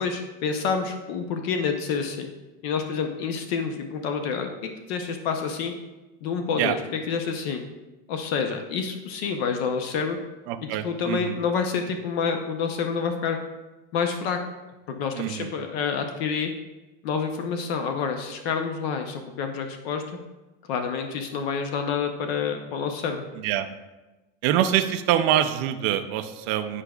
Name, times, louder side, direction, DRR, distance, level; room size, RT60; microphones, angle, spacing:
voice 1, 0.0-2.3 2.6-5.7 6.2-6.8 7.1-7.6 8.1-10.2 10.8-13.4 13.9-14.4 14.9-16.5 17.0-20.0 20.7-23.2, left 6 dB, 65° left, 5 dB, 0.7 m, -28 dB
voice 2, 10.5-11.3 15.2-15.5 23.4-23.7 24.4-26.8, right 11 dB, 40° right, 7 dB, 0.4 m, -25 dB
9.8 x 4.8 x 2.3 m, 1.1 s
supercardioid pair, 160°, 34 cm